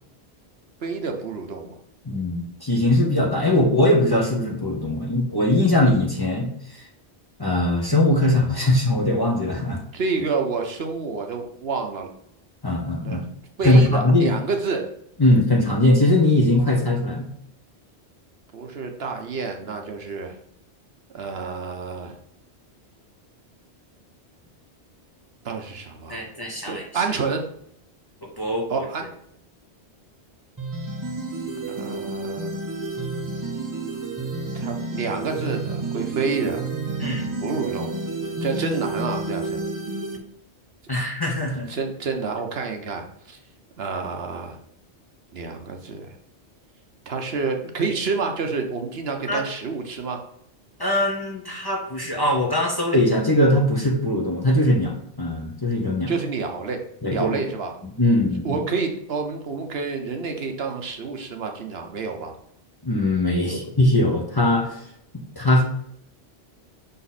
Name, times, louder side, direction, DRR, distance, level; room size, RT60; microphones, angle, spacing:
voice 1, 0.8-1.8 9.9-12.1 13.0-13.2 13.6-14.9 18.5-20.3 21.1-22.1 25.4-26.2 26.7-27.4 28.7-29.0 31.7-32.5 34.5-36.6 37.4-38.0 38.4-39.6 41.7-43.4 43.8-44.6 45.3-46.1 47.1-50.2 56.1-57.7 58.4-62.3, right 4 dB, 65° right, 4 dB, 1.1 m, -28 dB
voice 2, 2.0-6.8 7.4-9.8 12.6-13.2 13.6-14.3 15.2-17.3 26.1-27.0 28.2-28.9 37.0-37.3 40.9-41.7 49.3-49.4 50.8-56.1 57.0-57.3 57.8-58.6 62.8-64.8 65.1-65.6, left 1 dB, 20° left, 0 dB, 1.0 m, -21 dB
sound 1, 30.6-40.2, right 3 dB, 25° right, 0.5 m, -30 dB
5.9 x 4.1 x 4.1 m, 0.71 s
omnidirectional pair, 1.1 m